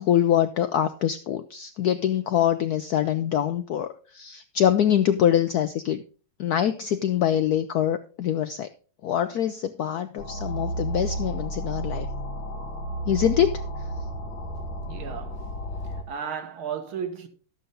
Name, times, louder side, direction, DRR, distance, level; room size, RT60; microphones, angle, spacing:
voice 1, 0.0-6.0 6.4-8.7 9.0-12.1 13.1-13.6, left 10 dB, 85° left, 0.8 m, -24 dB
sound 1, 10.2-16.0, right 1 dB, 65° left, 1.8 m, -32 dB
voice 2, 14.9-15.5 15.8-17.3, right 7 dB, 80° right, 2.0 m, -34 dB
11.5 x 8.0 x 3.8 m
omnidirectional pair, 2.3 m